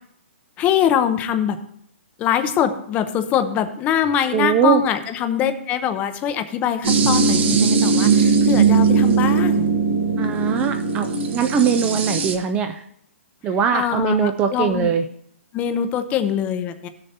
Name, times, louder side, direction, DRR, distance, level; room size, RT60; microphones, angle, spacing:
voice 1, 0.6-1.6 2.2-9.7 13.7-14.9 15.5-16.9, left 9 dB, 20° left, 9 dB, 0.6 m, -23 dB
voice 2, 4.3-4.8 10.2-12.8 13.4-15.0, right 7 dB, 15° right, 7 dB, 0.4 m, -21 dB
sound 1, 6.8-12.3, right 5 dB, 55° right, 1.2 m, -18 dB
15.5 x 6.7 x 2.8 m, 0.70 s
hypercardioid pair, 150°, 7 cm